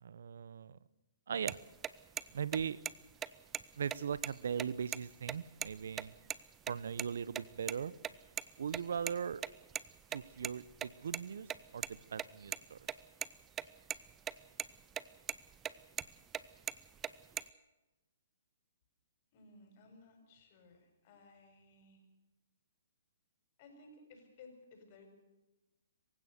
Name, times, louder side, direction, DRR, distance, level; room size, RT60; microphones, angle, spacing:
voice 1, 0.0-0.8 1.3-1.6 2.3-2.8 3.8-6.1 6.7-7.9 8.6-9.4 10.1-12.8, right 7 dB, 70° right, 20 dB, 0.8 m, -39 dB
sound 1, 1.5-1.6 1.8-1.9 2.2-2.3 2.5-2.9 3.2-3.3 3.5-3.6 3.9-5.0 5.3-5.4 5.6-5.7 6.0-6.4 6.7-7.1 7.3-8.4 8.7-11.2 11.5-13.3 13.6-13.7 13.9-14.3 14.6-15.0 15.3-16.4 16.7-17.4, right 9 dB, 15° right, 0.7 m, -38 dB
voice 2, 19.3-22.0 23.6-25.1, left 3 dB, 40° left, 4 dB, 7.0 m, -59 dB
26.5 x 16.0 x 6.7 m, 1.0 s
hypercardioid pair, 140°, 0 cm